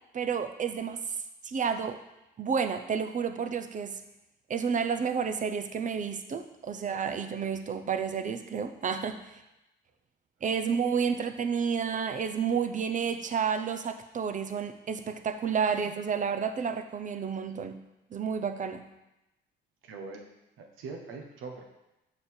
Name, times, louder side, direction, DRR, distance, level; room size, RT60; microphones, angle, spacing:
voice 1, 0.1-1.0 1.4-2.0 2.4-4.0 4.5-9.4 10.4-17.8 18.1-18.8, right 6 dB, 40° right, 9 dB, 0.6 m, -30 dB
voice 2, 19.8-21.6, right 4 dB, 90° right, 3 dB, 1.1 m, -42 dB
6.8 x 5.2 x 4.4 m, 0.94 s
cardioid pair, 90°, 20 cm